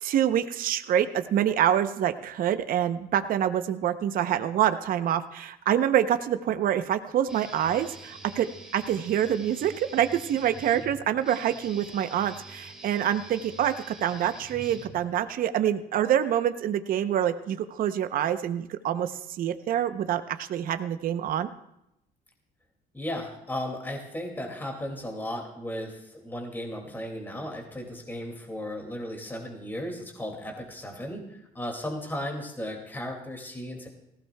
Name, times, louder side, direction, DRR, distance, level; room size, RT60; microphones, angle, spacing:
voice 1, 0.0-8.5 8.7-21.5, right 10 dB, 60° right, 10 dB, 0.7 m, -26 dB
Guitar, 7.3-15.3, right 2 dB, 5° right, 2.0 m, -46 dB
voice 2, 22.9-33.9, left 1 dB, 10° left, 1 dB, 2.2 m, -35 dB
18.5 x 15.5 x 2.2 m, 0.84 s
cardioid pair, 110°, 17 cm